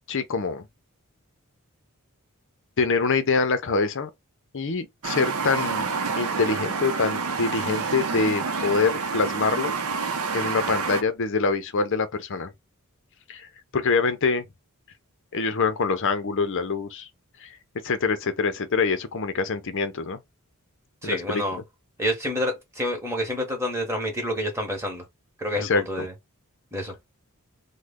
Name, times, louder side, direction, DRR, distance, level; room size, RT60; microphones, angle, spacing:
voice 1, 0.1-0.7 2.8-4.1 4.5-5.9 6.2-9.7 10.3-12.5 13.3-13.5 13.7-14.4 15.3-17.1 17.4-17.6 17.8-20.2 21.0-21.4 25.6-26.1, left 4 dB, 60° left, 0.6 m, -25 dB
sound 1, 5.0-11.0, right 5 dB, 70° right, 0.6 m, -28 dB
voice 2, 21.0-21.6 22.0-25.0 25.4-26.1 26.7-26.9, equal, 10° right, 1.2 m, -28 dB
3.2 x 2.1 x 3.5 m
head